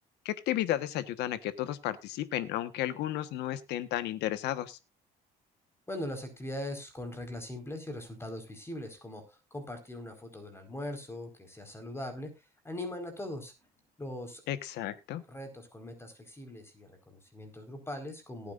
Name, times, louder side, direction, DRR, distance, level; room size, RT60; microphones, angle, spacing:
voice 1, 0.2-4.8 14.5-15.2, left 13 dB, 85° left, 11 dB, 1.3 m, -33 dB
voice 2, 5.9-12.3 12.6-13.5 14.0-14.4 15.3-18.5, left 1 dB, 15° left, 7 dB, 4.7 m, -40 dB
18.5 x 9.3 x 2.5 m, 0.26 s
cardioid pair, 110°, 17 cm